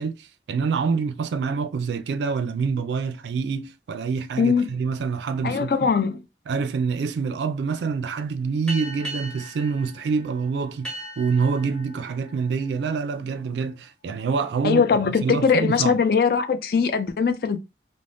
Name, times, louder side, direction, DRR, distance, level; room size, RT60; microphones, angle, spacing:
voice 1, 0.0-5.9 6.5-14.8 15.2-15.9, right 5 dB, 80° right, 0.3 m, -26 dB
voice 2, 4.4-4.7 5.4-6.2 14.6-17.6, left 5 dB, 55° left, 0.3 m, -21 dB
sound 1, 8.7-13.8, right 1 dB, 5° left, 0.8 m, -39 dB
3.3 x 2.0 x 2.5 m
head